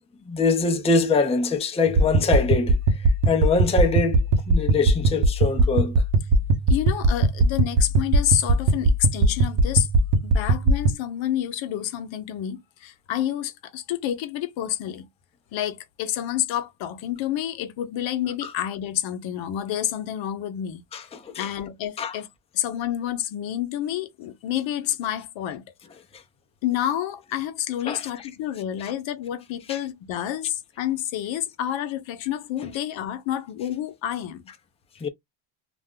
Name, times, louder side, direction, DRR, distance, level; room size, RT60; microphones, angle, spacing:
voice 1, 0.3-2.8 3.3-4.2 4.5-5.9 18.4-18.5 20.9-21.5 22.0-22.2 27.9-28.1 35.0-35.1, left 4 dB, 10° left, 0.6 m, -23 dB
sound 1, 1.9-10.9, right 2 dB, 55° right, 0.9 m, -21 dB
voice 2, 6.7-9.9 10.2-15.1 15.5-20.8 21.4-22.3 22.5-25.6 26.6-34.4, left 11 dB, 65° left, 0.8 m, -29 dB
2.5 x 2.1 x 3.7 m
cardioid pair, 100°, 50 cm